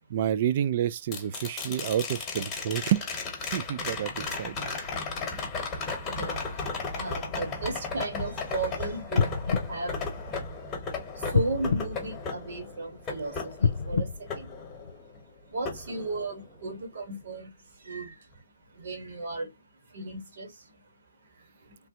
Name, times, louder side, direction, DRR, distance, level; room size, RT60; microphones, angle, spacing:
voice 1, 0.1-3.1 3.4-4.6, right 10 dB, 45° right, 0.3 m, -29 dB
sound 1, 1.1-15.2 15.6-16.7 18.9-19.0, left 4 dB, 15° left, 1.1 m, -35 dB
voice 2, 6.0-6.4 6.9-9.3 9.7-10.0 11.3-14.5 15.5-17.5 17.9-18.1 18.8-19.5 19.9-20.5, right 3 dB, 65° right, 1.3 m, -35 dB
sound 2, 9.1-10.8 11.3-12.9 13.5-15.2 15.8-15.9, left 5 dB, 70° left, 0.4 m, -29 dB
3.2 x 2.1 x 2.8 m
hypercardioid pair, 150°, 0 cm